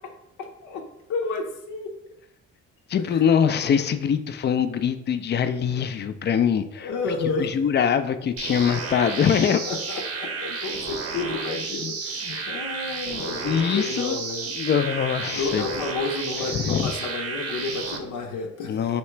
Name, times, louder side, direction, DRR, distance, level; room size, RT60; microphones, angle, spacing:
voice 1, 1.1-1.9 3.1-3.2 3.6-3.8 6.8-7.6 9.7-14.5 15.3-19.0, left 4 dB, 75° left, 2 dB, 0.7 m, -31 dB
voice 2, 2.9-6.9 7.4-9.6 12.3-12.5 13.4-14.2 14.6-15.7 16.3-16.9 18.7-19.0, left 7 dB, 35° left, 10 dB, 0.4 m, -23 dB
sound 1, 8.4-18.0, right 4 dB, 55° right, 0.7 m, -32 dB
3.2 x 2.9 x 4.4 m, 0.82 s
cardioid pair, 90°, 30 cm